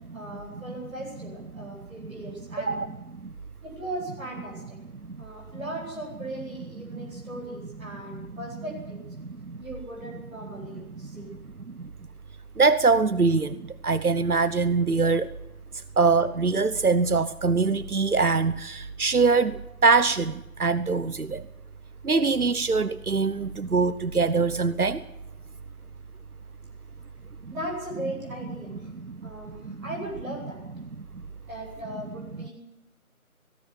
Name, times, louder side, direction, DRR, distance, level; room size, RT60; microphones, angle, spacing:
voice 1, 0.1-2.7 3.6-4.8 5.2-9.0 9.6-11.3 27.5-28.9 29.2-30.6 31.5-32.5, right 1 dB, ahead, 4.6 m, -38 dB
voice 2, 9.2-9.6 11.1-11.2 11.8-11.9 12.6-15.3 16.0-21.4 22.0-25.0 29.0-29.3 29.6-29.8 31.0-31.1, right 4 dB, 90° right, 1.2 m, -23 dB
19.5 x 17.5 x 9.8 m
figure-of-eight pair, 175°, 43 cm